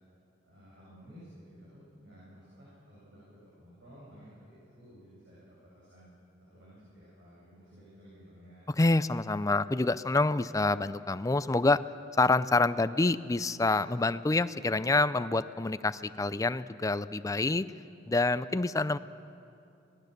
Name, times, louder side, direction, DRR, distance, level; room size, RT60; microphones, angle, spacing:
voice 1, 0.4-3.2 3.5-8.6, equal, 65° right, -8 dB, 7.5 m, -54 dB
voice 2, 8.8-11.8 12.2-17.7 18.1-19.0, left 2 dB, 15° left, 14 dB, 0.4 m, -27 dB
26.0 x 19.0 x 6.7 m, 2.6 s
head